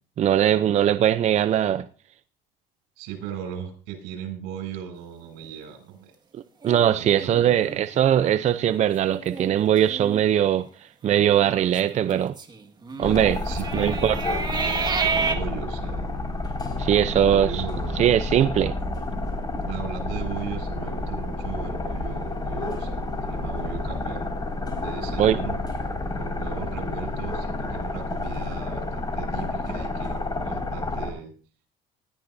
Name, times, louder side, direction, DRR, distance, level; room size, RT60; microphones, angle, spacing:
voice 1, 0.2-1.9 6.3-10.7 11.0-12.3 13.0-13.4 13.7-14.2 16.8-17.6 18.0-18.7 25.2-25.4, right 10 dB, 40° right, 0.6 m, -21 dB
voice 2, 3.0-6.1 6.9-7.8 13.4-16.1 17.1-18.0 19.6-24.3 24.8-25.6 26.1-31.3, right 8 dB, 85° right, 7.1 m, -37 dB
sound 1, 6.6-8.3 8.7-8.8 9.1-9.5 9.9-10.2 11.1-15.4, right 5 dB, 25° right, 1.9 m, -30 dB
sound 2, 13.0-31.1, left 2 dB, 20° left, 5.3 m, -30 dB
20.0 x 13.5 x 2.7 m
cardioid pair, 115°, 18 cm